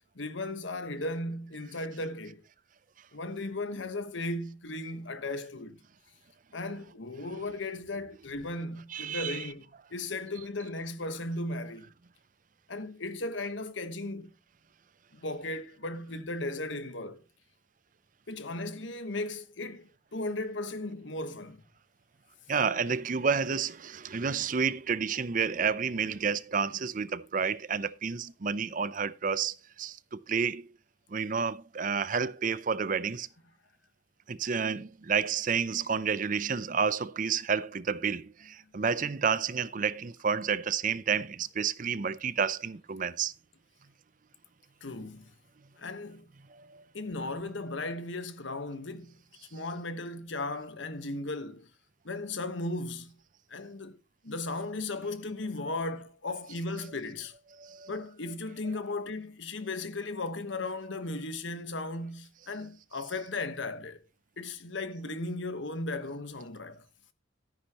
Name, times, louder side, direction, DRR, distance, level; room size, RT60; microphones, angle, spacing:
voice 1, 0.1-2.4 3.1-5.8 6.5-11.9 12.7-14.3 15.1-17.2 18.3-21.6 44.8-45.3 45.8-46.3 46.9-49.2 49.5-51.7 52.0-53.1 53.5-54.0 54.2-57.3 57.9-64.0 64.4-66.8, left 2 dB, 75° left, 1.2 m, -36 dB
voice 2, 8.9-9.5 22.5-30.7 31.1-33.3 34.3-43.3 46.5-46.8 57.6-57.9, right 6 dB, 45° right, 0.5 m, -30 dB
13.5 x 9.8 x 2.9 m
head